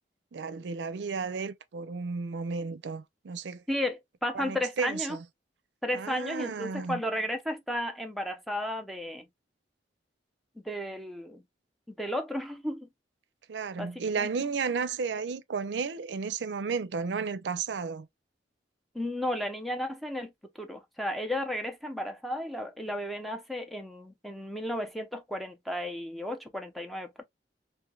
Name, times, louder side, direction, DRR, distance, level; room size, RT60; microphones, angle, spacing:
voice 1, 0.3-3.6 4.3-5.2 5.9-7.0 13.5-18.1, right 5 dB, 75° right, 0.5 m, -33 dB
voice 2, 3.7-5.2 5.8-9.3 10.6-11.4 11.9-12.9 13.8-14.3 18.9-20.3 20.6-27.2, left 1 dB, ahead, 0.5 m, -34 dB
3.1 x 2.6 x 2.2 m
head